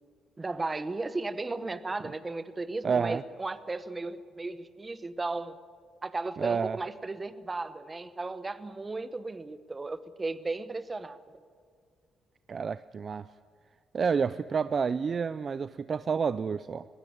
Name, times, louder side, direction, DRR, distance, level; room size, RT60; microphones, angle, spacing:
voice 1, 0.4-5.6 6.0-11.2, right 3 dB, 25° right, 1.0 m, -35 dB
voice 2, 2.8-3.2 6.4-6.8 12.5-13.3 13.9-16.9, right 6 dB, 45° right, 0.4 m, -29 dB
20.0 x 16.5 x 9.5 m
cardioid pair, 90°, 0 cm